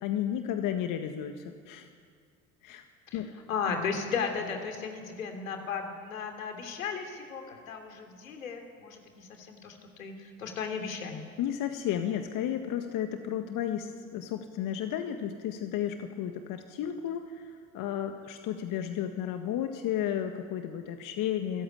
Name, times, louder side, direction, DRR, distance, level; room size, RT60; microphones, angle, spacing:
voice 1, 0.0-1.9 2.6-2.8 3.1-3.3 11.4-21.6, left 10 dB, 55° left, 6 dB, 1.8 m, -33 dB
voice 2, 3.5-11.2, left 6 dB, 80° left, 4 dB, 3.2 m, -35 dB
27.5 x 14.5 x 10.0 m, 2.2 s
figure-of-eight pair, 60°, 40 cm